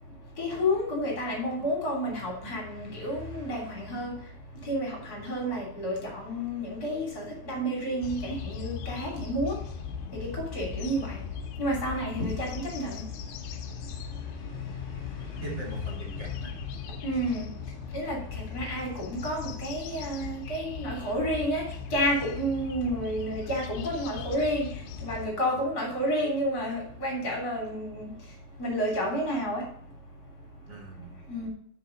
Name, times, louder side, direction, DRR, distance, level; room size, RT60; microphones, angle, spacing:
voice 1, 0.4-4.1 4.7-9.6 10.2-11.2 11.6-13.0 15.4-15.7 17.0-17.5 17.9-21.6 21.9-24.7 25.0-28.1 28.6-29.6 31.3-31.5, equal, 25° left, -2 dB, 2.5 m, -30 dB
sound 1, 8.0-25.3, left 7 dB, 75° left, 2.8 m, -39 dB
voice 2, 15.4-16.5 18.2-18.3 25.5-25.6 30.7-31.1, right 2 dB, 30° right, -4 dB, 2.6 m, -42 dB
10.0 x 6.9 x 4.0 m, 0.64 s
omnidirectional pair, 5.7 m